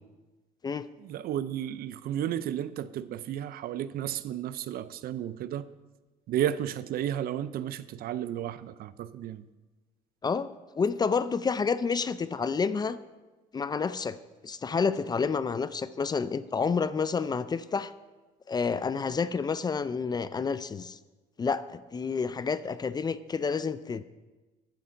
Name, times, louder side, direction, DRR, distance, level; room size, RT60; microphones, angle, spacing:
voice 1, 1.0-5.7 6.3-9.4, right 11 dB, 60° right, 15 dB, 0.5 m, -33 dB
voice 2, 10.8-13.0 13.5-14.2 14.4-17.9 18.5-21.0 21.4-24.0, left 5 dB, 25° left, 15 dB, 0.4 m, -29 dB
11.5 x 4.9 x 6.9 m, 1.2 s
cardioid pair, 110°, 17 cm